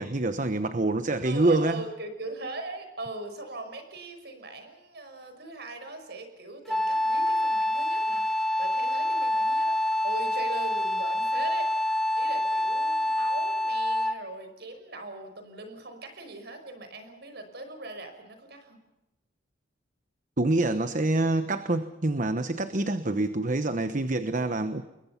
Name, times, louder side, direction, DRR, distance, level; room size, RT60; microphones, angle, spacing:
voice 1, 0.0-1.8 20.4-24.8, right 2 dB, 45° right, 10 dB, 1.1 m, -26 dB
voice 2, 1.2-11.7 12.2-18.8, right 2 dB, 60° right, 7 dB, 5.7 m, -40 dB
Wind instrument woodwind instrument, 6.7-14.3, left 1 dB, ahead, 0.9 m, -26 dB
28.5 x 22.0 x 5.9 m, 0.96 s
head